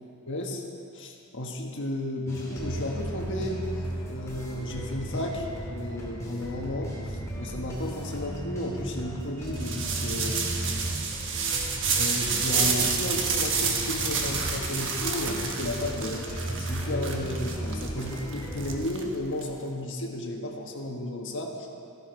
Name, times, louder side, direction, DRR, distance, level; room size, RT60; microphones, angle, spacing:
voice 1, 0.3-0.6 0.9-3.6 4.0-10.6 11.9-16.3 16.6-21.7, left 1 dB, 55° left, 1 dB, 1.4 m, -33 dB
sound 1, 2.3-18.8, right 1 dB, 15° left, 2.6 m, -35 dB
sound 2, 9.5-19.4, right 5 dB, 60° right, 1.2 m, -29 dB
14.0 x 11.0 x 4.6 m, 2.5 s
head